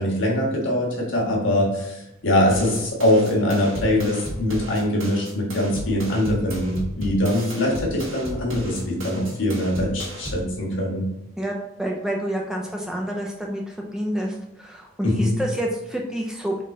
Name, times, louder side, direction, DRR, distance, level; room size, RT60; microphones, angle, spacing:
voice 1, 0.0-11.1 15.0-15.4, left 1 dB, 65° left, -2 dB, 1.5 m, -22 dB
sound 1, 2.5-10.5, right 1 dB, 70° right, 1.3 m, -35 dB
voice 2, 11.4-16.6, right 1 dB, 5° right, 0 dB, 0.4 m, -28 dB
3.8 x 3.7 x 3.7 m, 0.89 s
head